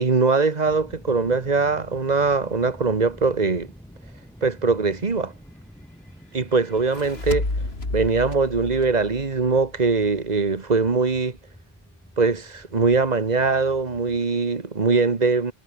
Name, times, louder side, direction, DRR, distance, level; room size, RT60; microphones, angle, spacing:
voice 1, 0.0-3.7 4.4-5.3 6.3-7.5 7.9-11.4 12.2-15.5, right 4 dB, 40° right, 1.5 m, -22 dB
sound 1, 0.6-14.2, equal, 5° left, 6.1 m, -47 dB
sound 2, 6.7-10.1, left 2 dB, 65° left, 4.3 m, -31 dB
omnidirectional pair, 1.1 m